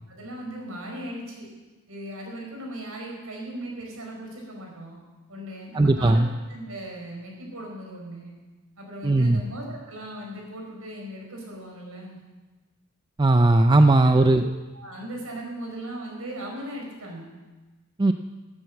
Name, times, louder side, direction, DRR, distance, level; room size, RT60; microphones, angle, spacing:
voice 1, 0.1-1.5 1.9-5.0 5.3-6.2 6.5-8.3 8.8-12.2 14.0-17.3, right 1 dB, 75° right, 0 dB, 4.7 m, -38 dB
voice 2, 5.7-6.3 9.0-9.4 13.2-14.4 18.0-18.1, right 2 dB, 20° right, 7 dB, 0.4 m, -18 dB
13.0 x 9.2 x 8.4 m, 1.2 s
head